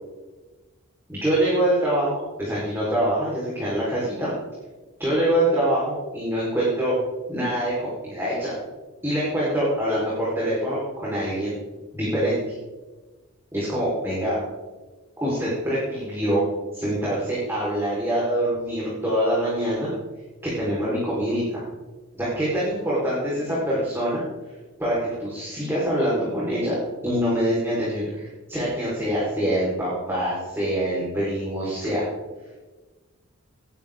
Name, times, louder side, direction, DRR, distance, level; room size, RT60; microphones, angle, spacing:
voice 1, 1.1-4.3 5.0-6.9 7.3-8.5 9.0-11.5 11.9-12.5 13.5-14.4 15.2-16.4 16.7-19.9 20.4-21.6 22.2-24.2 24.8-26.7 27.0-28.2 28.5-32.0, right 1 dB, 10° right, -8 dB, 4.1 m, -24 dB
17.5 x 11.0 x 3.7 m, 1.2 s
head